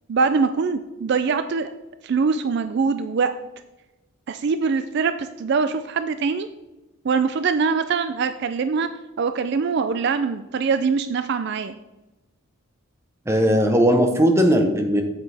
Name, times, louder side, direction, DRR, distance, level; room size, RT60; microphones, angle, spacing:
voice 1, 0.1-1.7 2.0-3.3 4.3-6.5 7.0-8.9 9.2-11.7, right 5 dB, 50° right, 10 dB, 0.3 m, -23 dB
voice 2, 13.3-15.0, equal, 10° right, 4 dB, 0.8 m, -18 dB
8.2 x 7.8 x 3.4 m, 1.0 s
head